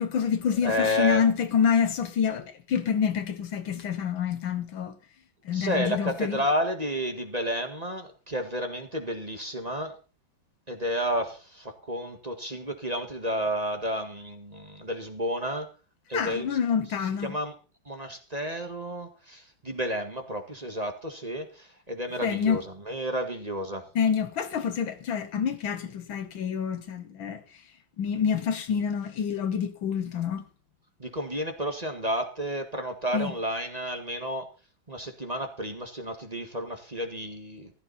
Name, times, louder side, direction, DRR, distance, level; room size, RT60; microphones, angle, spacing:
voice 1, 0.0-5.0 5.5-6.4 16.1-17.4 22.2-22.6 24.0-27.4 28.0-30.5 33.1-33.3, left 7 dB, 80° left, 2.1 m, -27 dB
voice 2, 0.6-1.2 5.5-10.0 10.7-15.7 16.1-16.6 17.2-17.5 17.9-23.9 31.0-34.5 34.9-37.7, equal, 20° right, 1.8 m, -31 dB
15.5 x 13.5 x 4.2 m
omnidirectional pair, 2.1 m